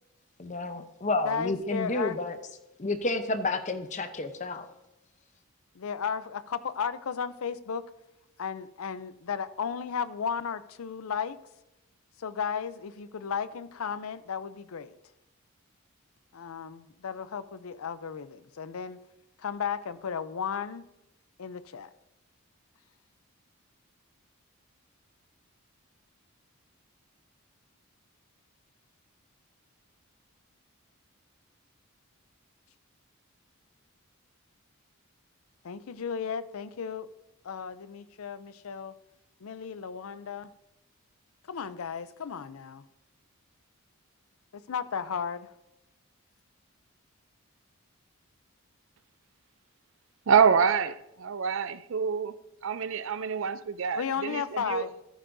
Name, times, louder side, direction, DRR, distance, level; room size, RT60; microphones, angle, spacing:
voice 1, 0.4-2.4 2.8-4.7, left 2 dB, 35° left, 0.7 m, -30 dB
voice 2, 1.2-2.2 5.7-7.8 8.4-11.4 12.2-14.9 16.3-19.0 19.4-20.8 21.4-21.9 35.6-37.1 37.4-38.9 39.4-40.5 41.5-42.8 44.5-45.5 53.9-54.9, left 6 dB, 75° left, 0.5 m, -34 dB
voice 3, 50.3-52.3 52.6-54.9, right 6 dB, 60° right, 0.4 m, -26 dB
14.0 x 9.9 x 2.6 m
head